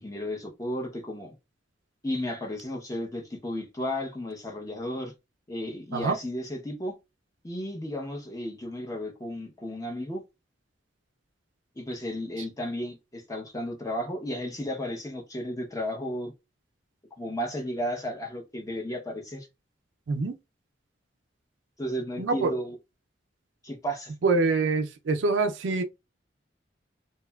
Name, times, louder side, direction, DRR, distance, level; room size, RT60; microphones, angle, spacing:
voice 1, 0.0-1.3 2.0-5.1 5.5-7.0 7.4-10.2 11.8-16.3 17.2-19.5 21.8-22.8 23.6-24.1, equal, 20° left, 0.6 m, -33 dB
voice 2, 22.2-22.5 24.2-25.8, right 3 dB, 80° right, 0.4 m, -25 dB
2.7 x 2.2 x 2.2 m
head